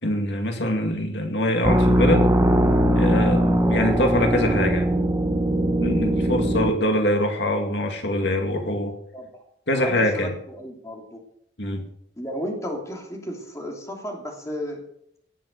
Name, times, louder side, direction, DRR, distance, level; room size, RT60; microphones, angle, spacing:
voice 1, 0.0-2.3 2.9-4.9 5.8-8.9 9.7-10.3 11.6-11.8, left 1 dB, 75° left, 4 dB, 2.2 m, -24 dB
sound 1, 1.6-6.7, right 1 dB, 15° right, 1.4 m, -20 dB
voice 2, 9.1-9.4 9.7-11.2 12.2-14.8, equal, 15° left, 1 dB, 2.9 m, -33 dB
17.5 x 7.7 x 6.6 m, 0.70 s
head